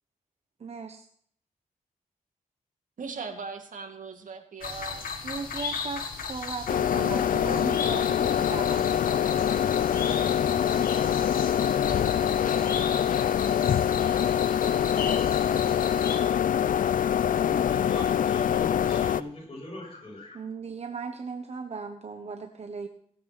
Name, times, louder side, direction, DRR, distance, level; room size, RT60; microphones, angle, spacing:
voice 1, 0.6-1.0 5.2-8.9 20.3-22.9, right 4 dB, 50° right, 5 dB, 1.2 m, -37 dB
voice 2, 3.0-5.1, right 4 dB, 65° right, 4 dB, 2.4 m, -39 dB
sound 1, 4.6-16.2, left 6 dB, 90° left, 1.9 m, -37 dB
sound 2, 6.7-19.2, left 9 dB, 70° left, 0.5 m, -24 dB
voice 3, 17.4-20.4, left 1 dB, 40° left, -1 dB, 7.3 m, -42 dB
17.0 x 8.6 x 6.0 m, 0.63 s
cardioid pair, 80°, 14 cm